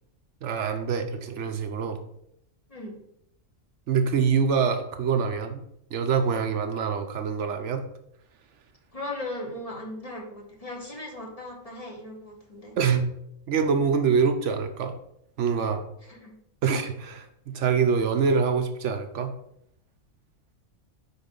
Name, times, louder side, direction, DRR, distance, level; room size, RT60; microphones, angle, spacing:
voice 1, 0.4-2.0 3.9-5.6 5.9-7.8 12.8-13.1 13.5-14.9 15.4-15.8 16.6-19.3, right 6 dB, 70° right, 7 dB, 1.0 m, -25 dB
voice 2, 8.9-12.7 16.0-16.4, left 1 dB, 30° left, -1 dB, 1.4 m, -38 dB
9.2 x 4.0 x 3.8 m, 0.74 s
omnidirectional pair, 1.3 m